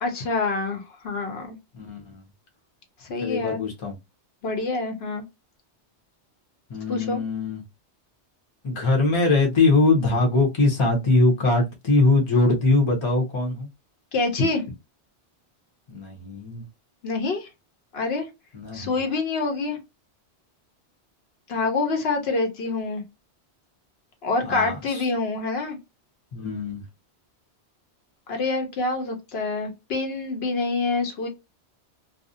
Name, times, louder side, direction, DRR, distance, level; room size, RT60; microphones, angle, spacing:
voice 1, 0.0-1.6 3.0-3.6 4.4-5.2 6.9-7.2 14.1-14.6 17.0-17.5 17.9-18.3 18.7-19.8 21.5-23.0 24.2-25.8 28.3-31.3, left 3 dB, 65° left, 0.9 m, -26 dB
voice 2, 1.7-2.2 3.2-4.0 6.7-7.6 8.6-13.7 15.9-16.6 18.5-18.9 24.5-25.0 26.3-26.8, left 3 dB, 30° left, 0.6 m, -22 dB
2.5 x 2.0 x 2.5 m
omnidirectional pair, 1.2 m